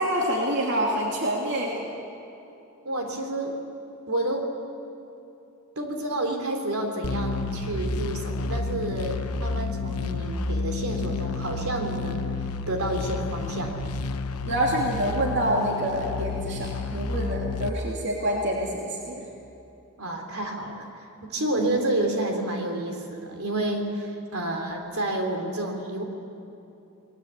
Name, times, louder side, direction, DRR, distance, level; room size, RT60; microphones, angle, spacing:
voice 1, 0.0-1.8 14.4-19.3 21.4-21.8, equal, 55° right, -2 dB, 2.9 m, -27 dB
voice 2, 2.8-3.6 4.1-4.5 5.8-12.3 12.7-13.8 20.0-20.9 21.2-26.0, right 1 dB, 70° right, 3 dB, 3.6 m, -29 dB
sound 1, 7.0-17.7, left 3 dB, 85° left, 1.0 m, -30 dB
29.5 x 20.0 x 8.4 m, 2.9 s
head